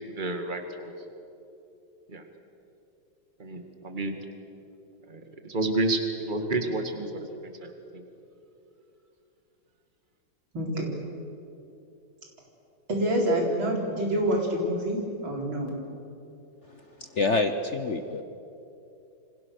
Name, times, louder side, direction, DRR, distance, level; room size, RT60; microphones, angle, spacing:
voice 1, 0.1-0.9 2.1-2.3 3.4-4.2 5.1-8.0, right 2 dB, 25° right, 5 dB, 2.2 m, -31 dB
voice 2, 10.5-10.9 12.9-15.8, right 1 dB, 85° right, -1 dB, 5.1 m, -27 dB
voice 3, 17.1-18.2, left 3 dB, 45° left, 8 dB, 1.0 m, -26 dB
28.5 x 25.5 x 6.7 m, 2.8 s
omnidirectional pair, 2.1 m